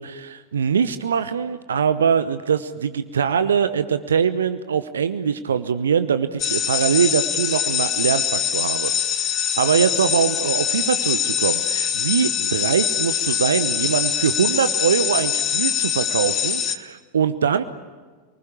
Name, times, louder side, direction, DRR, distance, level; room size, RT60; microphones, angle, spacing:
voice 1, 0.0-17.6, right 7 dB, 70° right, 13 dB, 1.0 m, -22 dB
sound 1, 6.4-16.8, left 9 dB, 30° left, 1.5 m, -23 dB
28.5 x 20.0 x 9.9 m, 1.4 s
figure-of-eight pair, 90°, 0 cm